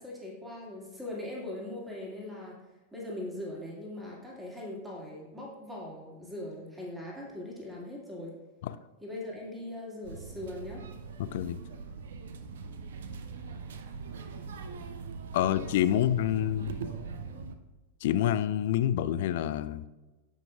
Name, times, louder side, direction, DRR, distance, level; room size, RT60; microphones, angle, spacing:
voice 1, 0.0-2.6 2.9-8.3 9.0-10.9 15.4-15.8, left 1 dB, 10° right, -3 dB, 2.2 m, -40 dB
sound 1, 10.0-17.6, right 5 dB, 60° right, 0.6 m, -41 dB
voice 2, 11.2-11.6 15.3-16.7 18.0-19.9, left 11 dB, 55° left, 13 dB, 0.4 m, -27 dB
14.5 x 5.3 x 2.4 m, 1.1 s
figure-of-eight pair, 90°, 0 cm